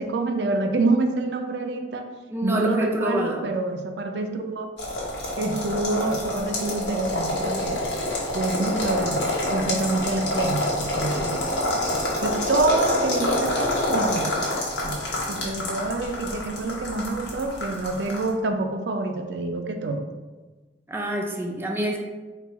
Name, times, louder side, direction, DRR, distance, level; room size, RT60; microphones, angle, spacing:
voice 1, 0.0-2.1 2.4-4.7 5.4-7.9 8.3-11.5 11.9-14.4 14.8-15.0 15.3-20.0, right 2 dB, 75° right, 5 dB, 0.4 m, -27 dB
voice 2, 2.3-3.4 20.9-22.0, equal, 15° right, 0 dB, 0.4 m, -27 dB
sound 1, 4.8-18.3, left 1 dB, 85° left, 1.2 m, -27 dB
4.5 x 2.4 x 4.0 m, 1.3 s
head